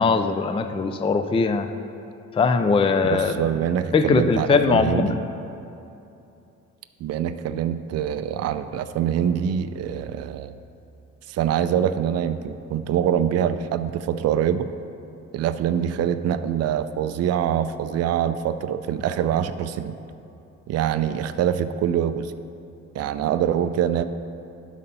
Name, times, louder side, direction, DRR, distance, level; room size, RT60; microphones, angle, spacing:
voice 1, 0.0-1.7 2.3-3.4 3.9-5.2, left 4 dB, 20° left, 8 dB, 0.4 m, -20 dB
voice 2, 3.1-5.2 7.0-10.5 11.3-14.7 15.3-20.0 20.7-22.3 22.9-24.0, right 9 dB, 55° right, 10 dB, 0.4 m, -24 dB
11.5 x 4.0 x 5.4 m, 2.7 s
cardioid pair, 90°, 30 cm